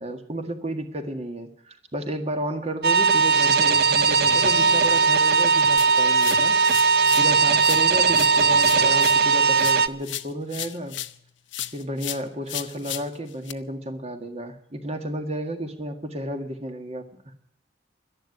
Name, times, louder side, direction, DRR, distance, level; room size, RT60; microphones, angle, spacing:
voice 1, 0.0-11.0 11.7-17.3, right 1 dB, 35° right, 6 dB, 1.8 m, -32 dB
sound 1, 2.8-9.9, right 5 dB, 55° right, 0.7 m, -19 dB
sound 2, 5.8-7.3 7.6-11.2 11.5-13.5, left 13 dB, 75° left, 0.8 m, -35 dB
12.5 x 11.0 x 9.4 m, 0.73 s
head